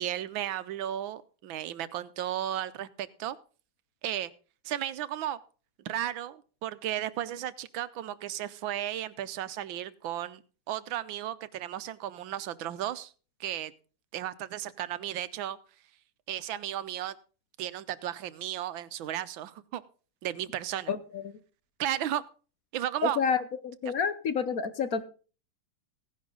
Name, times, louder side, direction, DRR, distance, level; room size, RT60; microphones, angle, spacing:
voice 1, 0.0-3.4 4.0-4.3 4.6-5.4 5.8-10.4 10.7-13.1 13.4-13.7 14.1-15.6 16.3-17.1 17.6-19.8 20.2-20.9 21.8-22.2 22.7-23.2, right 12 dB, 90° right, 16 dB, 1.6 m, -34 dB
voice 2, 20.9-21.4 23.0-25.0, left 6 dB, 55° left, 12 dB, 1.2 m, -29 dB
16.5 x 10.5 x 3.9 m, 0.37 s
omnidirectional pair, 2.1 m